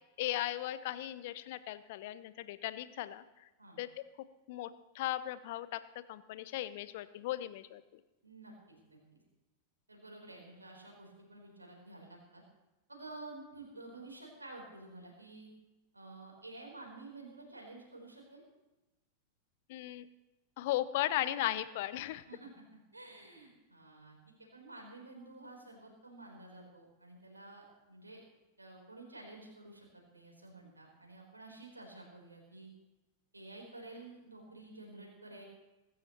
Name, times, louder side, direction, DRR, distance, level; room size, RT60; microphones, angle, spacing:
voice 1, 0.2-3.5 3.8-3.9 4.2-4.7 4.9-7.8 19.7-20.1 20.6-22.2, left 14 dB, 50° left, 15 dB, 0.7 m, -37 dB
voice 2, 8.2-9.2 9.9-12.4 12.9-15.5 15.9-18.4 22.3-22.5 22.9-28.2 28.6-32.7 33.3-35.4, right 2 dB, 80° right, 0 dB, 3.9 m, -51 dB
23.0 x 12.5 x 3.0 m, 1.1 s
figure-of-eight pair, 90°, 0 cm